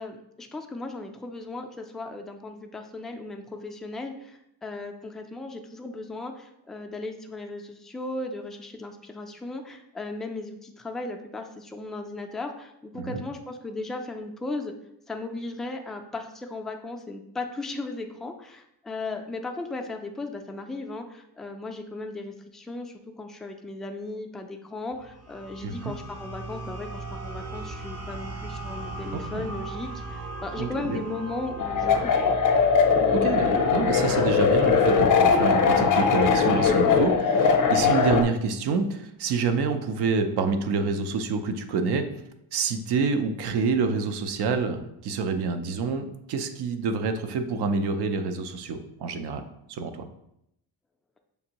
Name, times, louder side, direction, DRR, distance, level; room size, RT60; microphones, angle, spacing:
voice 1, 0.0-14.7 15.1-32.4, left 2 dB, ahead, 3 dB, 0.3 m, -36 dB
sound 1, 24.9-34.3, right 3 dB, 40° right, 0.7 m, -38 dB
voice 2, 25.6-25.9 29.1-29.5 30.6-31.0 33.1-42.1 42.5-50.1, right 4 dB, 75° right, 7 dB, 0.7 m, -27 dB
sound 2, 31.6-38.2, left 6 dB, 50° left, 0.6 m, -20 dB
6.7 x 2.6 x 2.9 m, 0.78 s
cardioid pair, 115°, 40 cm